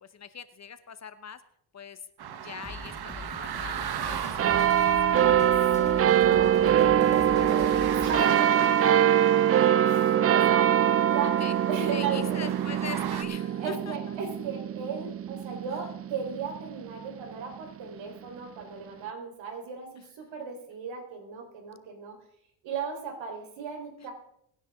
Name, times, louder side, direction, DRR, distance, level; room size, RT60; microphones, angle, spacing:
voice 1, 0.0-1.4 1.7-2.0 2.4-5.4 11.4-11.5 11.9-14.0 20.0-20.1, left 7 dB, 35° left, 13 dB, 0.9 m, -43 dB
sound 1, 2.2-13.2, right 8 dB, 55° right, 1.3 m, -38 dB
sound 2, 2.6-8.2, left 3 dB, 15° left, 1.2 m, -43 dB
sound 3, 4.4-17.3 17.9-18.0, right 10 dB, 35° right, 0.4 m, -23 dB
voice 2, 5.4-8.9 9.8-12.5 13.5-22.2 22.6-24.1, right 5 dB, 80° right, 3 dB, 4.0 m, -36 dB
24.5 x 10.0 x 3.6 m, 0.74 s
cardioid pair, 110°, 46 cm